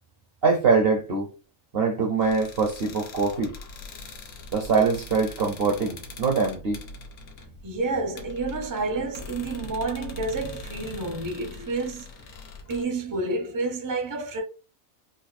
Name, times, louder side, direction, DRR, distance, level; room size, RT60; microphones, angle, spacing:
voice 1, 0.4-1.3 1.7-3.6 4.5-6.8, right 4 dB, 55° right, 0.8 m, -23 dB
sound 1, 2.2-12.8, left 2 dB, 65° left, 1.1 m, -42 dB
voice 2, 7.6-12.1 12.7-14.4, right 3 dB, 20° right, 0.6 m, -29 dB
4.1 x 2.5 x 2.5 m
omnidirectional pair, 1.5 m